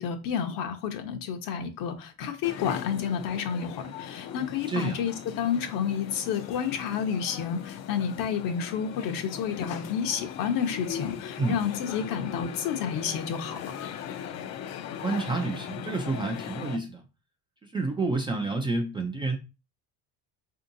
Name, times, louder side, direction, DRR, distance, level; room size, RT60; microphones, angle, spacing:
voice 1, 0.0-13.7, left 7 dB, 65° left, 0.8 m, -30 dB
sound 1, 2.4-16.8, left 8 dB, 45° left, 0.4 m, -39 dB
voice 2, 4.7-5.0 11.4-11.6 15.0-17.0 17.6-19.4, right 3 dB, 15° right, 0.3 m, -29 dB
4.4 x 2.7 x 2.6 m
cardioid pair, 135°, 37 cm